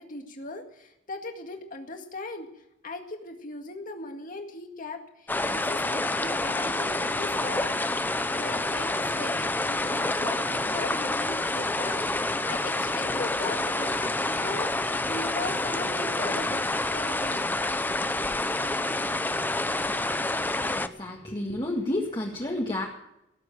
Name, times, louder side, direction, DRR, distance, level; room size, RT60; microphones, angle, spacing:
voice 1, 0.0-2.5 2.8-16.7 16.9-17.5, left 2 dB, 45° left, 4 dB, 2.0 m, -39 dB
sound 1, 5.3-20.9, left 2 dB, 10° left, 0.6 m, -28 dB
voice 2, 20.7-22.9, left 1 dB, 25° left, -2 dB, 1.9 m, -30 dB
18.0 x 7.8 x 8.7 m, 0.83 s
head